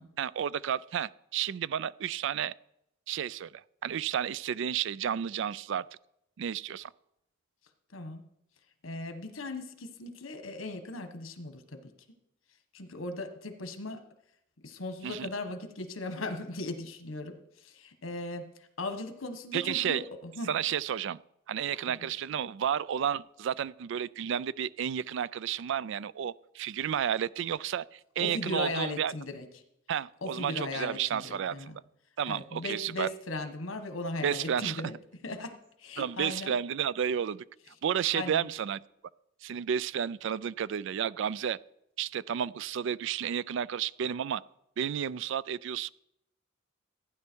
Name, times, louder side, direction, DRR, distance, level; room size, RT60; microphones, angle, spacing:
voice 1, 0.2-2.5 3.1-5.8 6.4-6.9 15.0-15.3 19.5-20.0 20.5-21.2 21.5-29.1 29.9-31.8 32.2-33.1 34.2-34.8 36.0-37.5 37.8-38.8 39.4-41.6 42.0-44.4 44.8-45.9, right 8 dB, 65° right, 21 dB, 0.3 m, -32 dB
voice 2, 7.9-8.3 8.8-11.9 12.7-14.0 14.6-18.5 18.8-20.5 21.7-21.9 28.2-29.4 30.2-31.7 32.3-34.9 35.2-35.5 35.8-36.6 38.1-38.4, left 2 dB, 80° left, 8 dB, 1.4 m, -38 dB
15.0 x 9.6 x 4.5 m, 0.80 s
head